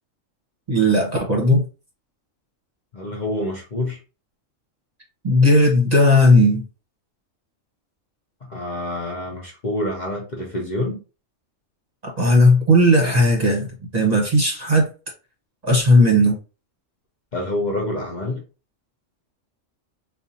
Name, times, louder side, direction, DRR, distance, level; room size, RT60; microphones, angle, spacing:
voice 1, 0.7-1.6 5.2-6.6 12.0-13.7 13.9-14.8 15.6-16.4, left 1 dB, 35° right, 0 dB, 1.0 m, -16 dB
voice 2, 2.9-4.0 8.4-11.0 17.3-18.4, left 1 dB, 40° left, -1 dB, 0.8 m, -27 dB
4.1 x 2.5 x 2.7 m, 0.32 s
omnidirectional pair, 1.3 m